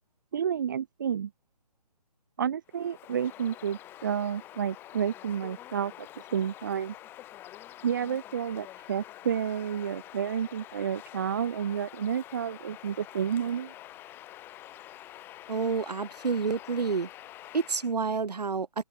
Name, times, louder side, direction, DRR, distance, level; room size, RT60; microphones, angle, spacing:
voice 1, 0.3-1.3 2.4-5.9 6.3-6.9 7.8-13.7, right 8 dB, 30° right, 0.7 m, -30 dB
Bird vocalization bird call bird song, 2.7-17.9, left 14 dB, 10° left, 3.2 m, -47 dB
voice 2, 15.5-17.1 17.5-18.7, right 5 dB, 85° right, 1.7 m, -29 dB
open air
hypercardioid pair, 165°, 20 cm